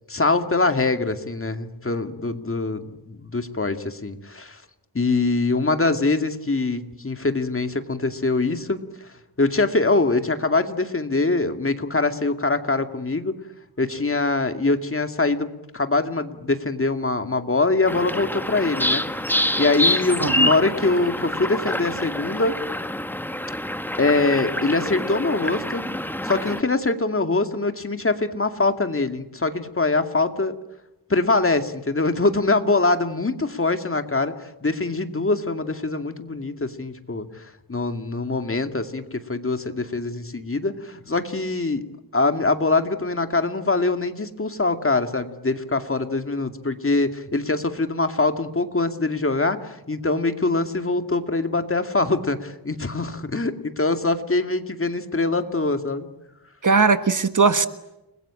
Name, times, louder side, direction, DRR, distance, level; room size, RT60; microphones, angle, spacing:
voice 1, 0.1-4.6 4.9-9.1 9.4-13.4 13.8-19.0 19.6-22.6 24.0-25.8 26.2-30.5 31.1-41.8 42.1-56.1, left 3 dB, 30° left, 7 dB, 2.3 m, -23 dB
sound 1, 17.9-26.6, left 1 dB, 5° left, 1.4 m, -26 dB
voice 2, 56.6-57.7, right 4 dB, 45° right, 11 dB, 1.5 m, -18 dB
30.0 x 22.0 x 8.9 m, 0.93 s
wide cardioid pair, 110°, 43 cm